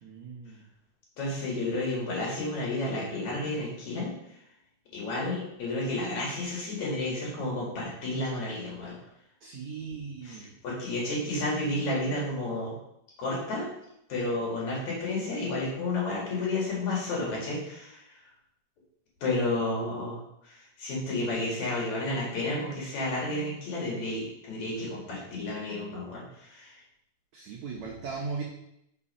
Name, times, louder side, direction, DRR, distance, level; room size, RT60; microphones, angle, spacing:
voice 1, 0.0-0.6 9.4-10.5 27.3-28.4, right 5 dB, 80° right, -1 dB, 1.6 m, -38 dB
voice 2, 1.2-4.1 4.9-9.0 9.9-10.0 10.2-12.8 13.2-13.7 14.1-18.0 19.2-26.8 27.8-27.9, left 2 dB, 55° left, -4 dB, 3.0 m, -31 dB
6.1 x 5.6 x 5.4 m, 0.78 s
omnidirectional pair, 4.5 m